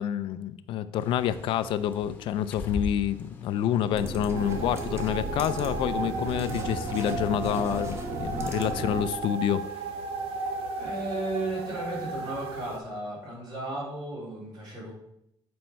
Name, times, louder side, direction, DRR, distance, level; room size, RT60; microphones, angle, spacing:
voice 1, 0.0-9.6, left 10 dB, 65° left, 13 dB, 0.4 m, -28 dB
Bird, 1.0-8.0, left 3 dB, 20° left, 1.0 m, -43 dB
sound 1, 3.8-9.2, right 1 dB, 30° right, 1.2 m, -35 dB
sound 2, 4.3-12.8, right 3 dB, 85° right, 0.8 m, -35 dB
voice 2, 10.8-14.9, right 2 dB, 50° right, -4 dB, 3.3 m, -34 dB
7.9 x 5.1 x 4.3 m, 0.77 s
cardioid pair, 170°, 9 cm